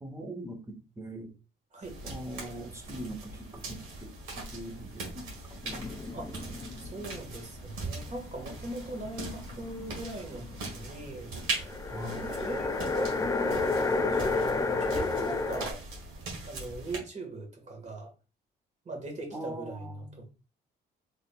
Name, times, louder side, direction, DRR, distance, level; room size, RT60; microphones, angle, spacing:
voice 1, 0.0-1.3 2.0-5.6 11.9-12.2 19.3-20.3, right 1 dB, 15° right, 1.1 m, -42 dB
sound 1, 1.8-17.0, right 2 dB, 90° right, 1.6 m, -41 dB
sound 2, 5.6-7.5 7.7-10.9 11.5-15.7, left 3 dB, 15° left, 0.3 m, -31 dB
voice 2, 6.1-11.6 12.2-14.5 14.8-15.8 16.5-18.1 18.9-20.3, right 2 dB, 35° right, 1.7 m, -41 dB
3.8 x 3.4 x 2.4 m
cardioid pair, 90°, 20 cm